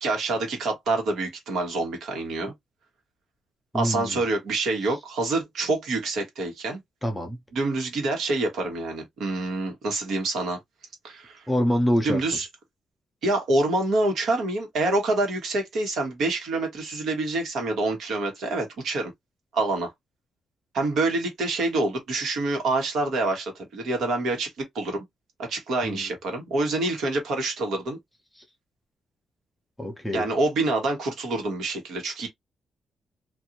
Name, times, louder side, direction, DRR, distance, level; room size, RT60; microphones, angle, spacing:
voice 1, 0.0-2.5 3.7-6.8 7.5-10.6 11.0-11.4 12.0-12.5 13.2-19.1 19.5-19.9 20.7-25.0 25.4-28.0 30.1-32.3, right 2 dB, 65° right, 1.3 m, -26 dB
voice 2, 3.7-4.2 7.0-7.4 11.5-12.2 25.8-26.1 29.8-30.3, equal, 5° left, 0.6 m, -25 dB
2.6 x 2.6 x 2.8 m
wide cardioid pair, 170°, 0 cm